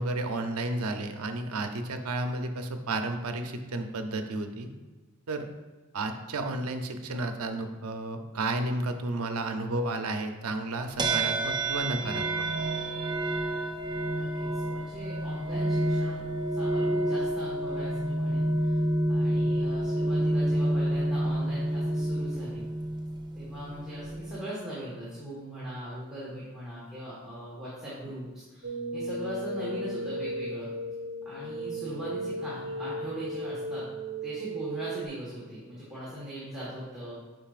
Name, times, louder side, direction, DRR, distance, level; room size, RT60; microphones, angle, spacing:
voice 1, 0.0-4.7 5.3-5.5 5.9-12.4, right 2 dB, 85° right, 6 dB, 0.7 m, -32 dB
sound 1, 11.0-24.5, right 1 dB, 20° right, 0.3 m, -29 dB
voice 2, 14.1-16.2 16.5-18.8 19.1-22.6 23.3-30.7 31.2-33.8 34.2-37.2, equal, 5° right, -10 dB, 1.5 m, -40 dB
sound 2, 28.6-35.1, right 1 dB, 55° right, 0.9 m, -35 dB
8.7 x 5.4 x 2.5 m, 1.2 s
head